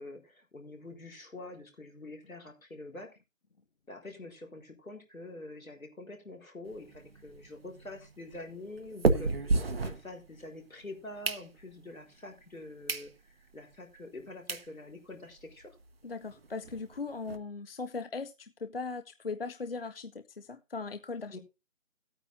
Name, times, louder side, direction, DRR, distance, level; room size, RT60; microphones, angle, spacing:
voice 1, 0.0-3.1 3.9-15.8 21.3-21.4, left 2 dB, 80° left, 2 dB, 4.3 m, -46 dB
sound 1, 6.7-10.6 11.0-11.9 12.4-12.5 12.8-13.1 13.5-13.6 14.2-14.3 14.5-14.7 15.1-15.2 15.4-15.5 15.8-15.9 16.2-17.4, right 3 dB, 45° right, 1.0 m, -32 dB
voice 2, 16.0-21.4, left 4 dB, 45° left, 11 dB, 0.7 m, -39 dB
17.0 x 9.0 x 2.6 m, 0.26 s
figure-of-eight pair, 155°, 41 cm